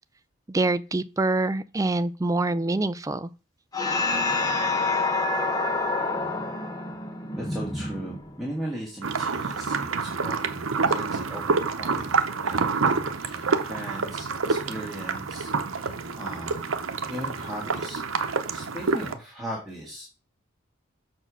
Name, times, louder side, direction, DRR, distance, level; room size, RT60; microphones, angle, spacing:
voice 1, 0.5-3.3, right 2 dB, 15° right, 0.4 m, -25 dB
sound 1, 3.7-8.5, left 3 dB, 20° left, 1.1 m, -27 dB
voice 2, 7.4-20.0, right 1 dB, ahead, 1.7 m, -38 dB
sound 2, 9.0-19.1, right 4 dB, 85° right, 0.8 m, -27 dB
6.5 x 4.4 x 6.1 m
head